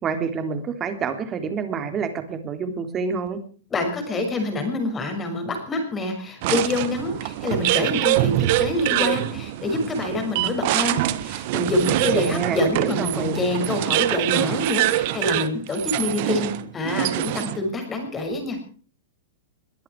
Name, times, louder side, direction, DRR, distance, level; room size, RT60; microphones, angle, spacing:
voice 1, 0.0-3.4 12.1-13.4, right 5 dB, 20° right, 8 dB, 3.3 m, -28 dB
voice 2, 3.7-18.6, left 2 dB, 15° left, 5 dB, 6.3 m, -26 dB
sound 1, 6.4-17.7, right 16 dB, 50° right, 1.5 m, -24 dB
22.5 x 13.5 x 4.8 m, 0.42 s
hypercardioid pair, 150°, 0 cm